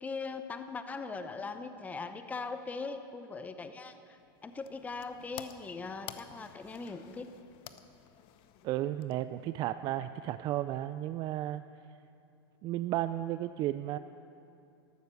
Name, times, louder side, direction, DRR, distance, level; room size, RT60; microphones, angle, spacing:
voice 1, 0.0-3.9 4.4-7.3, left 4 dB, 10° left, 9 dB, 0.7 m, -40 dB
sound 1, 4.2-9.5, left 11 dB, 45° left, 0.8 m, -51 dB
voice 2, 8.6-11.6 12.6-14.0, right 14 dB, 35° right, 12 dB, 0.3 m, -33 dB
13.0 x 12.5 x 7.1 m, 2.6 s
supercardioid pair, 130°, 13 cm